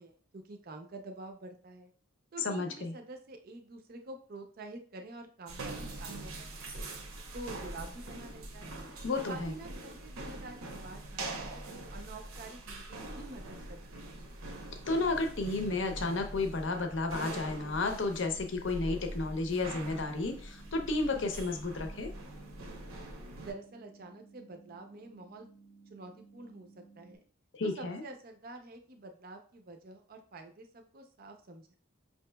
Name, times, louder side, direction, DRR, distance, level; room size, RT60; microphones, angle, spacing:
voice 1, 0.0-1.9 2.3-6.6 7.3-8.8 9.3-14.2 23.4-25.5 25.9-27.2 27.6-31.8, right 2 dB, 45° right, 5 dB, 0.5 m, -48 dB
voice 2, 2.4-2.9 9.0-9.5 14.9-22.1 27.5-28.0, left 3 dB, 60° left, 5 dB, 0.6 m, -32 dB
sound 1, 5.5-23.5, right 2 dB, 85° right, 0.8 m, -43 dB
sound 2, 17.2-27.2, right 4 dB, 10° left, 0.8 m, -58 dB
5.4 x 2.9 x 2.2 m, 0.43 s
head